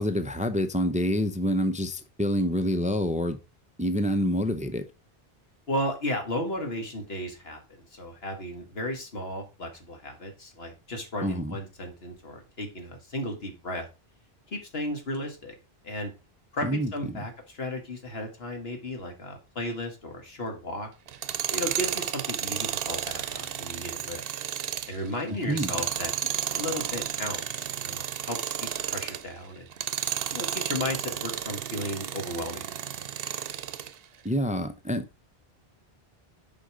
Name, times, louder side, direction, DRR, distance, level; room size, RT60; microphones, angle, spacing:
voice 1, 0.0-3.4 3.8-4.8 11.2-11.6 16.6-17.2 25.5-25.7 34.2-35.1, equal, 10° right, 0.4 m, -27 dB
voice 2, 5.7-7.6 7.9-13.9 14.5-15.5 15.8-16.1 16.5-20.9 21.5-24.3 24.9-26.1 26.5-29.7 30.3-32.7, left 1 dB, 75° left, 2.2 m, -34 dB
Tools, 21.1-29.3 29.7-33.9, right 9 dB, 70° right, 0.8 m, -32 dB
6.5 x 5.2 x 4.9 m
omnidirectional pair, 1.0 m